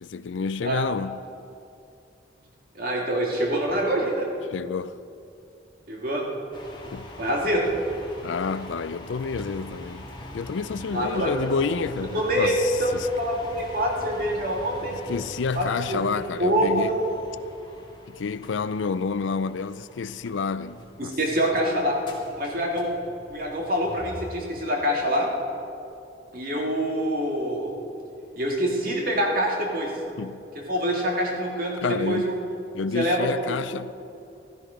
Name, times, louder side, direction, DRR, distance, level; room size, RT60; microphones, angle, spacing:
voice 1, 0.0-1.3 4.5-5.0 6.9-7.1 8.2-10.1 10.3-13.1 14.9-17.0 18.1-21.2 30.2-30.5 31.8-32.4 32.7-33.9, left 5 dB, 90° left, 0.4 m, -29 dB
voice 2, 2.7-4.3 5.9-6.3 7.2-7.8 10.9-11.4 12.1-12.5 12.8-14.9 15.5-16.0 16.4-17.0 21.0-22.0 22.4-22.9 23.3-25.3 26.3-27.7 28.4-29.9 30.7-32.4 32.9-33.3, equal, 50° right, 2.2 m, -25 dB
sound 1, 6.5-24.4, left 1 dB, 25° left, 1.9 m, -43 dB
15.5 x 13.0 x 5.1 m
head